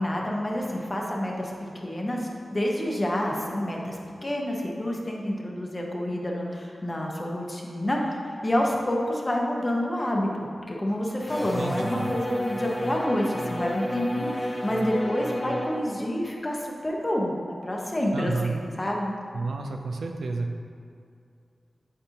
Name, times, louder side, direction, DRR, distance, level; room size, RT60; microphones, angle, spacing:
voice 1, 0.0-17.3 17.6-19.1, left 1 dB, 35° left, -1 dB, 1.1 m, -28 dB
sound 1, 11.3-15.8, equal, 15° left, 1.2 m, -31 dB
voice 2, 11.6-12.1 18.1-18.5 19.3-20.5, right 3 dB, 90° right, 3 dB, 0.4 m, -30 dB
8.6 x 4.4 x 2.9 m, 2.5 s
cardioid pair, 50°, 0 cm